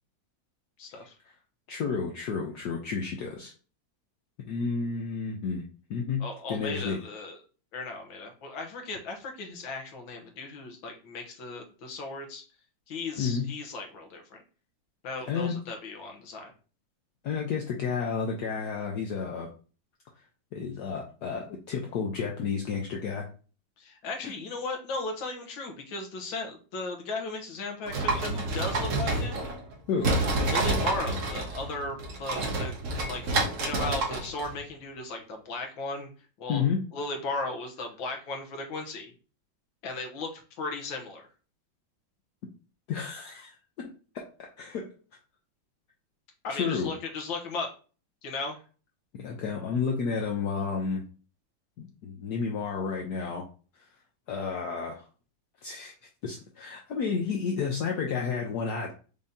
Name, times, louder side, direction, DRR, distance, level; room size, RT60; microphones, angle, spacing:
voice 1, 0.8-1.2 6.2-7.4 7.7-12.4 12.9-14.4 15.0-16.5 23.8-29.5 30.5-32.7 33.1-36.1 36.4-36.6 36.9-39.1 39.8-41.3 46.4-47.7 48.2-48.6, left 3 dB, 85° left, 3 dB, 1.7 m, -36 dB
voice 2, 1.7-3.5 4.4-6.2 6.5-7.0 13.2-13.5 15.3-15.5 17.2-19.5 20.5-23.2 24.2-24.3 29.9-30.1 36.5-36.8 42.9-44.3 44.6-44.9 46.5-46.9 49.1-51.0 51.8-53.4 54.3-55.0 55.6-55.9 56.2-58.9, left 5 dB, 65° left, 0 dB, 1.1 m, -31 dB
sound 1, 27.9-29.7 30.0-34.6, right 2 dB, 50° right, 1.1 m, -29 dB
5.3 x 2.7 x 3.5 m, 0.37 s
omnidirectional pair, 2.1 m